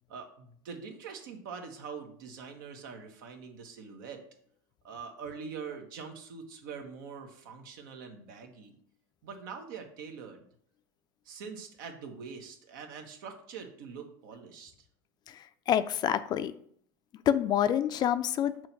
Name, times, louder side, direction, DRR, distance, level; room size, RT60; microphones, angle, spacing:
voice 1, 0.1-4.2 4.8-8.7 9.2-10.4 11.2-14.7, right 6 dB, 75° right, 4 dB, 1.3 m, -44 dB
voice 2, 15.3-16.5 17.3-18.7, left 10 dB, 40° left, 12 dB, 0.4 m, -27 dB
6.2 x 3.1 x 5.8 m, 0.63 s
supercardioid pair, 105°, 11 cm